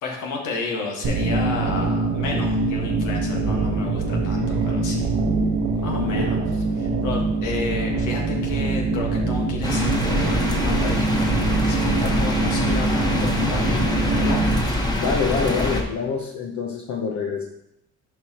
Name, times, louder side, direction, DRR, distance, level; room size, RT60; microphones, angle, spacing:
voice 1, 0.0-5.1 5.8-6.4 6.8-14.6, left 3 dB, 90° left, 0 dB, 1.6 m, -32 dB
sound 1, 1.0-14.6, right 3 dB, 90° right, 1.4 m, -23 dB
voice 2, 5.9-6.3 15.0-17.5, left 5 dB, 65° left, -1 dB, 1.0 m, -26 dB
sound 2, 9.6-15.8, left 1 dB, 15° left, 1.2 m, -24 dB
11.0 x 4.8 x 3.0 m, 0.80 s
cardioid pair, 90°, 30 cm